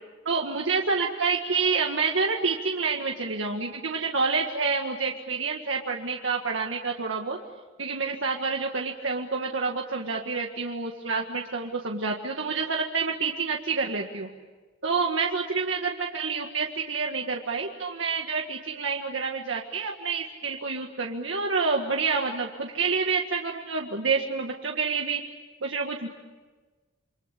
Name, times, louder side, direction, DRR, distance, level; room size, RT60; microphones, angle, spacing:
voice 1, 0.2-7.4 7.8-14.3 14.8-25.2 25.6-26.1, right 4 dB, 80° right, 1 dB, 1.8 m, -28 dB
29.0 x 24.5 x 8.4 m, 1.3 s
head